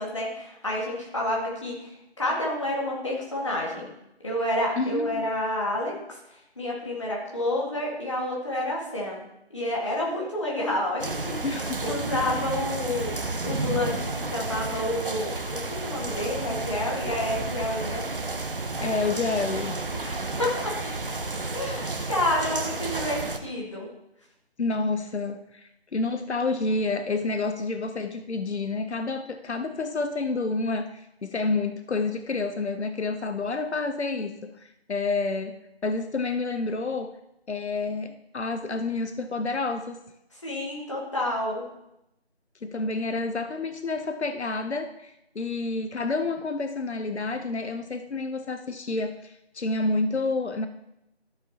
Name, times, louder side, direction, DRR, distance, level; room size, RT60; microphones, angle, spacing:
voice 1, 0.0-1.9 2.2-3.9 4.2-6.2 6.6-9.2 9.5-11.4 11.8-13.1 13.4-18.1 19.9-20.7 21.5-23.9 40.4-41.6, left 1 dB, 30° left, -3 dB, 1.8 m, -29 dB
voice 2, 4.8-5.3 11.4-12.4 18.8-19.8 24.6-35.6 35.8-37.1 37.5-40.0 42.6-50.7, left 3 dB, 85° left, 9 dB, 0.8 m, -29 dB
sound 1, 11.0-23.4, right 3 dB, 55° right, 0.9 m, -31 dB
13.0 x 7.0 x 2.9 m, 0.85 s
figure-of-eight pair, 175°, 33 cm